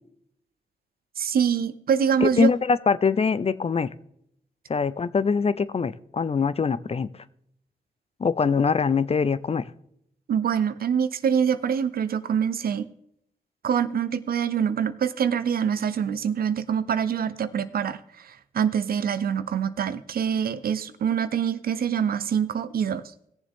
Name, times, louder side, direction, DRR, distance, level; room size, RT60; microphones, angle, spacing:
voice 1, 1.2-2.5 10.3-12.8 13.6-23.0, right 7 dB, 75° right, 0.7 m, -25 dB
voice 2, 2.2-3.9 4.7-7.1 8.2-9.7, left 5 dB, 40° left, 0.6 m, -23 dB
17.5 x 7.2 x 3.6 m
cardioid pair, 70°, 16 cm